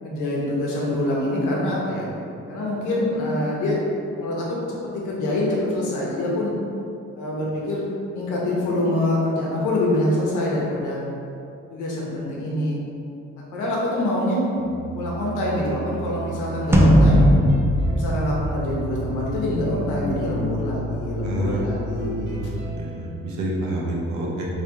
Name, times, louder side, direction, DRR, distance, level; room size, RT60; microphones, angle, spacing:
voice 1, 0.0-2.1 2.5-3.8 4.2-6.5 7.1-11.0 11.7-12.8 13.5-14.4 14.9-17.2 17.9-22.4, left 1 dB, 85° left, -4 dB, 1.2 m, -25 dB
sound 1, 14.6-23.1, right 2 dB, 40° right, 1.1 m, -32 dB
sound 2, 16.7-19.3, equal, 10° right, 0.4 m, -17 dB
voice 2, 21.2-21.9 22.2-22.4 22.7-24.5, right 1 dB, 70° right, -3 dB, 1.1 m, -28 dB
3.4 x 3.4 x 4.3 m, 2.6 s
cardioid pair, 90°, 30 cm